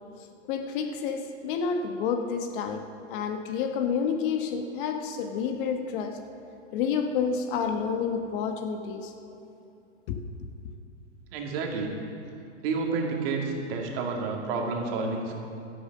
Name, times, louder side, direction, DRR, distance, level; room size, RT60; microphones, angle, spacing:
voice 1, 0.5-6.2 6.7-9.1 10.1-10.2, left 6 dB, 45° left, 6 dB, 1.2 m, -29 dB
voice 2, 11.3-11.9 12.6-15.4, right 4 dB, 50° right, 1 dB, 2.3 m, -30 dB
13.0 x 11.0 x 6.5 m, 2.8 s
hypercardioid pair, 130°, 37 cm